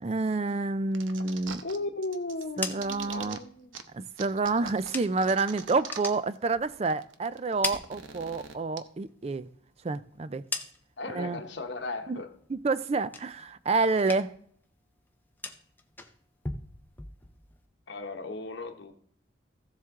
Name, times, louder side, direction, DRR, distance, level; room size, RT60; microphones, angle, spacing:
voice 1, 0.0-1.6 2.6-3.4 3.9-9.5 9.8-10.4 11.1-11.4 12.1-12.2 12.5-14.3, right 3 dB, 30° right, 0.4 m, -28 dB
sound 1, 0.9-1.8 2.0-3.4 3.7-3.8 4.2-6.4 6.6-6.7 6.9-8.8, right 6 dB, 80° right, 0.9 m, -42 dB
voice 2, 1.6-3.7 11.0-12.3 17.9-18.9, left 2 dB, 60° left, 1.1 m, -36 dB
sound 2, 2.3-5.4 5.7-7.0 7.3-8.7 9.0-11.1 11.5-12.0 12.3-13.6 13.9-14.5 14.8-17.6, left 3 dB, 10° left, 0.6 m, -41 dB
14.5 x 7.4 x 3.7 m
head